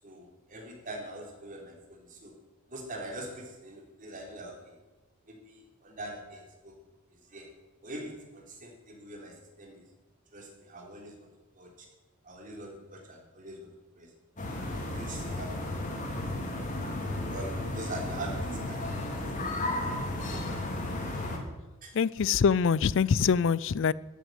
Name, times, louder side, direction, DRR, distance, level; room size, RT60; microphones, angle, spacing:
voice 1, 0.0-2.3 2.7-4.8 5.3-6.7 7.3-7.6 7.8-9.9 10.3-11.3 11.6-11.9 12.2-13.7 14.0-14.1 14.6-14.7 14.9-15.7 17.3-19.3 19.8-20.0 20.3-20.6 21.8-22.0, right 1 dB, 40° right, 3.4 m, -43 dB
sound 1, 14.4-21.4, left 1 dB, 35° left, 2.9 m, -34 dB
voice 2, 21.9-23.9, left 6 dB, 60° left, 0.4 m, -24 dB
12.5 x 9.2 x 9.7 m
head